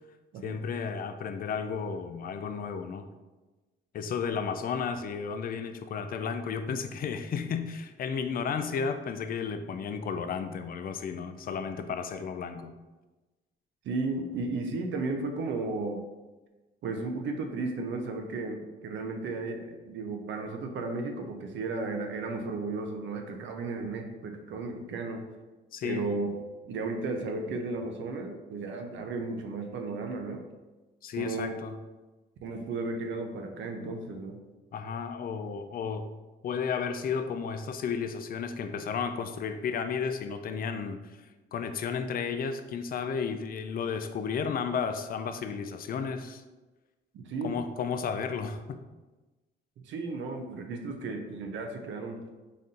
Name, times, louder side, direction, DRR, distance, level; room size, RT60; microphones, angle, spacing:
voice 1, 0.4-3.1 3.9-12.7 25.7-26.1 31.0-31.8 34.7-36.1 36.4-46.4 47.4-48.8, left 6 dB, 45° left, 8 dB, 0.4 m, -33 dB
voice 2, 13.8-16.0 16.8-25.2 25.8-30.4 31.2-31.6 32.4-34.4 47.1-47.6 49.8-52.2, right 3 dB, 70° right, 4 dB, 0.6 m, -34 dB
4.1 x 2.5 x 3.7 m, 1.2 s
cardioid pair, 90°, 20 cm